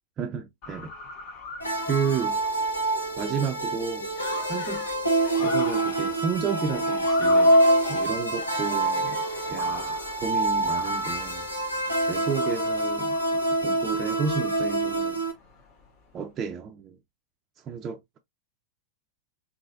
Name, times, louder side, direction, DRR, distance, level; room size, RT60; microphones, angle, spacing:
voice 1, 0.2-0.9 1.8-2.4 3.2-4.1 4.5-4.9 5.4-7.6 7.9-9.2 9.5-10.0 10.2-11.5 12.1-15.2 16.1-17.0 17.7-18.2, right 6 dB, 30° right, 0.4 m, -31 dB
Motor vehicle (road) / Siren, 0.6-16.2, left 4 dB, 45° left, 1.6 m, -43 dB
sound 1, 1.6-15.3, right 1 dB, 85° left, 1.1 m, -25 dB
Laughter, 4.1-5.0 5.3-6.2 6.5-9.8, left 6 dB, 60° left, 0.7 m, -41 dB
3.8 x 2.9 x 2.5 m
figure-of-eight pair, 90°, 0 cm